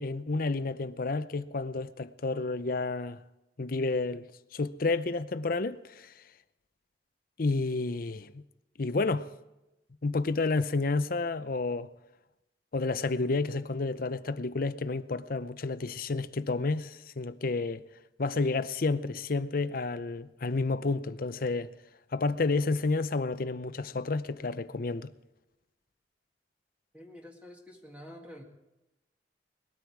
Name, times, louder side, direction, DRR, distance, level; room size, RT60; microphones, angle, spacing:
voice 1, 0.0-3.2 3.6-4.3 4.5-6.1 7.4-8.4 8.8-9.3 10.0-11.9 12.7-17.8 18.2-21.7 22.1-25.1, left 3 dB, 55° left, 0.7 m, -30 dB
voice 2, 26.9-28.4, equal, 10° right, 1.9 m, -48 dB
20.5 x 13.0 x 4.7 m
head